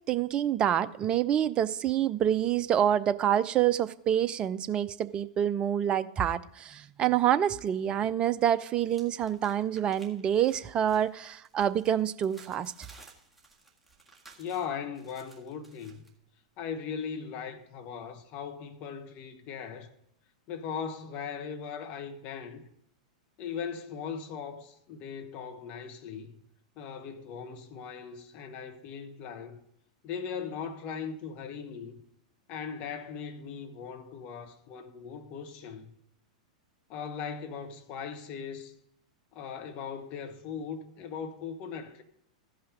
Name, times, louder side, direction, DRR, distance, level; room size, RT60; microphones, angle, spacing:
voice 1, 0.1-12.7, right 10 dB, 25° right, 0.5 m, -27 dB
sound 1, 7.1-8.0 8.3-16.1, right 3 dB, 5° right, 1.8 m, -57 dB
voice 2, 14.4-16.1 16.6-19.9 20.5-22.7 23.4-26.4 26.8-29.6 30.0-32.0 32.5-35.9 36.9-38.7 39.3-42.0, left 6 dB, 40° left, 1.1 m, -39 dB
14.5 x 5.6 x 5.0 m
figure-of-eight pair, 95°, 4 cm